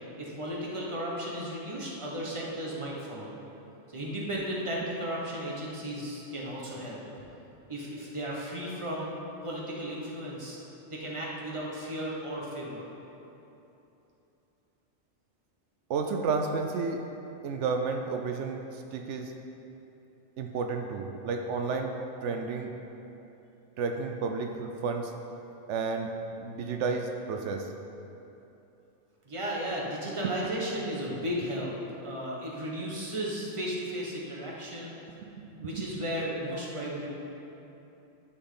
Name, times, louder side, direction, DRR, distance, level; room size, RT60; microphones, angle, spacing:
voice 1, 0.2-3.3 3.9-7.0 7.7-9.1 9.4-10.6 10.9-12.9 29.2-31.7 32.0-35.0 35.6-37.1, equal, 25° right, -4 dB, 1.3 m, -35 dB
voice 2, 15.9-17.0 17.4-19.3 20.4-22.0 22.2-22.7 23.8-25.1 25.7-26.1 26.4-27.7 35.2-35.4 35.8-35.9, right 4 dB, 85° right, 4 dB, 0.9 m, -31 dB
11.5 x 6.1 x 3.9 m, 3.0 s
omnidirectional pair, 1.2 m